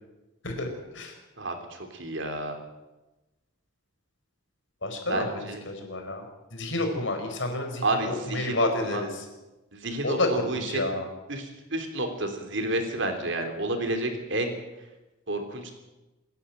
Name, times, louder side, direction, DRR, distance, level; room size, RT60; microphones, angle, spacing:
voice 1, 1.4-2.6 5.1-5.6 7.8-9.0 9.7-10.9 11.3-14.5 15.3-15.7, right 2 dB, 60° right, 5 dB, 3.4 m, -30 dB
voice 2, 4.8-6.2 6.5-9.2 10.0-11.1, left 2 dB, 60° left, 4 dB, 4.7 m, -29 dB
25.5 x 11.0 x 9.2 m, 1.1 s
head